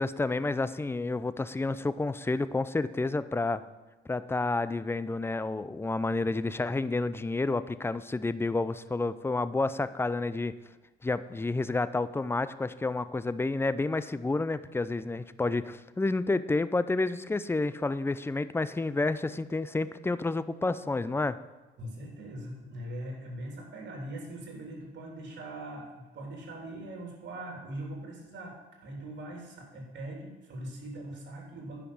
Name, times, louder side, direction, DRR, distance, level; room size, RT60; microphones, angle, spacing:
voice 1, 0.0-3.6 4.1-10.5 11.0-21.4, left 3 dB, 10° left, 15 dB, 0.5 m, -30 dB
voice 2, 21.8-28.5 28.8-31.8, right 1 dB, 65° right, 0 dB, 3.3 m, -41 dB
10.0 x 5.8 x 7.1 m, 1.2 s
cardioid pair, 90°, 20 cm